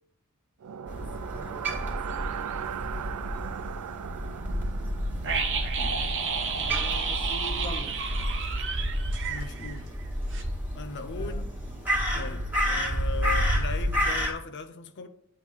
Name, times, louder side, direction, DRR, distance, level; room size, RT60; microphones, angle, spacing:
sound 1, 0.6-8.6, right 8 dB, 85° right, 0.4 m, -39 dB
voice 1, 0.9-2.7 6.6-8.0 11.1-11.4 11.8-12.5, equal, 20° left, 0.9 m, -44 dB
Crow, 0.9-14.3, equal, 10° right, 1.7 m, -30 dB
sound 2, 5.2-10.1 10.3-10.4, right 5 dB, 55° right, 1.0 m, -31 dB
voice 2, 9.3-9.9 10.7-11.5 12.2-15.1, left 4 dB, 55° left, 0.6 m, -38 dB
9.1 x 3.7 x 6.4 m
head